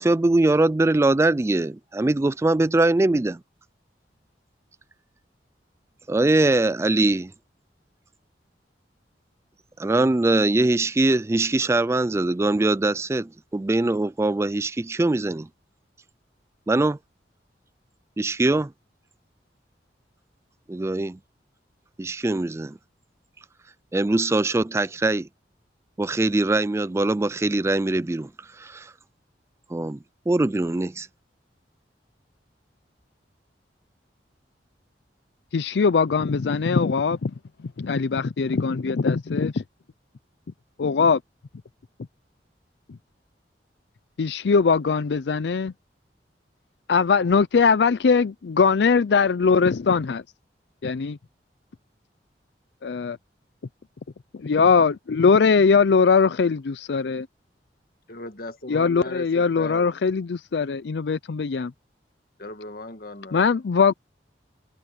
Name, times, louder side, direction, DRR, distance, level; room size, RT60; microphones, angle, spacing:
voice 1, 0.0-3.4 6.1-7.3 9.8-15.5 16.7-17.0 18.2-18.7 20.7-21.2 22.0-22.8 23.9-25.3 26.0-28.9 29.7-30.0 30.3-31.1, right 2 dB, 15° right, 0.3 m, -22 dB
voice 2, 35.5-37.3 37.8-39.6 40.8-41.2 44.2-45.7 46.9-50.2 50.8-51.2 52.8-53.2 54.4-57.3 58.7-61.7 63.3-63.9, left 5 dB, 75° left, 0.5 m, -21 dB
voice 3, 58.1-59.9 62.4-63.5, left 2 dB, 55° left, 1.8 m, -37 dB
head